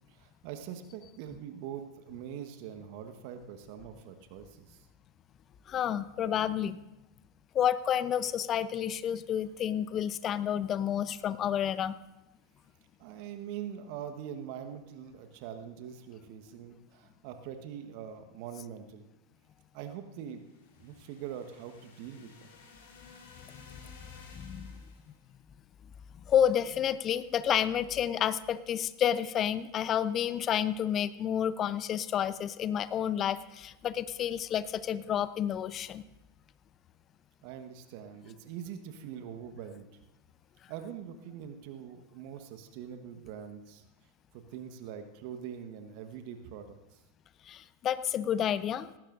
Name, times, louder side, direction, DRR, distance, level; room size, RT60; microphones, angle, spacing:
voice 1, 0.1-4.9 13.0-19.1 19.7-20.4 20.8-22.5 37.4-39.9 40.7-43.8 44.3-47.0, right 9 dB, 55° right, 7 dB, 1.2 m, -43 dB
voice 2, 5.7-6.8 7.5-12.0 24.3-24.8 26.3-36.0 47.5-48.9, left 9 dB, 35° left, 15 dB, 0.6 m, -30 dB
sound 1, 20.2-25.2, left 4 dB, 65° left, 3.1 m, -55 dB
18.5 x 15.0 x 2.6 m, 0.97 s
figure-of-eight pair, 90°, 0 cm